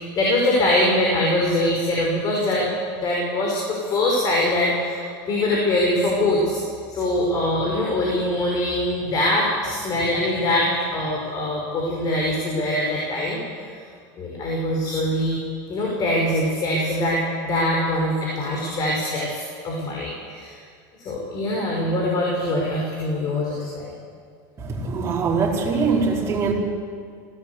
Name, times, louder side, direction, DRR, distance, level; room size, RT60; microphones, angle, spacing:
voice 1, 0.0-2.7 3.0-6.6 6.9-13.4 14.2-15.4 15.7-20.5 21.0-23.9, left 1 dB, 35° left, -3 dB, 5.3 m, -23 dB
voice 2, 24.6-26.5, right 4 dB, 25° right, -3 dB, 4.9 m, -22 dB
20.0 x 17.0 x 8.3 m, 2.1 s
supercardioid pair, 135°, 11 cm